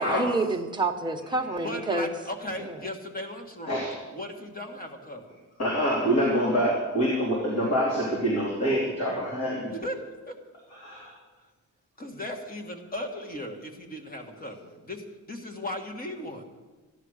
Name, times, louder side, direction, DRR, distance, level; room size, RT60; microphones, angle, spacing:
voice 1, 0.0-2.1 2.6-2.8, right 2 dB, 15° right, 2 dB, 1.1 m, -28 dB
voice 2, 1.6-3.8 4.1-5.4 9.7-9.9 11.1-11.2 12.0-16.4, left 1 dB, 30° left, 3 dB, 1.8 m, -37 dB
voice 3, 5.6-9.6 10.8-11.1, equal, 55° left, -3 dB, 3.1 m, -25 dB
14.5 x 10.5 x 6.5 m, 1.2 s
wide cardioid pair, 175°, 31 cm